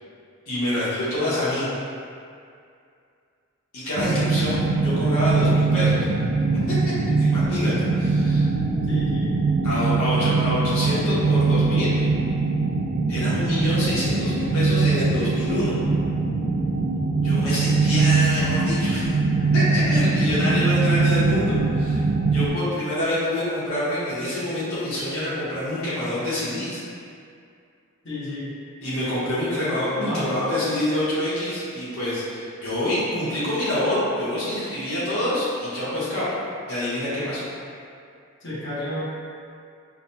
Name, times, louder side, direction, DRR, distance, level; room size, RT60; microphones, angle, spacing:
voice 1, 0.5-1.7 3.7-6.1 7.2-8.5 9.6-12.0 13.1-15.8 17.2-19.1 19.5-22.0 22.3-26.8 28.8-36.3 36.7-37.5, left 1 dB, 90° left, -10 dB, 1.3 m, -26 dB
sound 1, 4.0-22.5, right 3 dB, 75° right, 0.4 m, -22 dB
voice 2, 8.8-9.3 28.0-28.5 30.0-30.4 38.4-39.0, left 1 dB, 60° left, -9 dB, 1.1 m, -31 dB
4.9 x 2.2 x 2.7 m, 2.4 s
head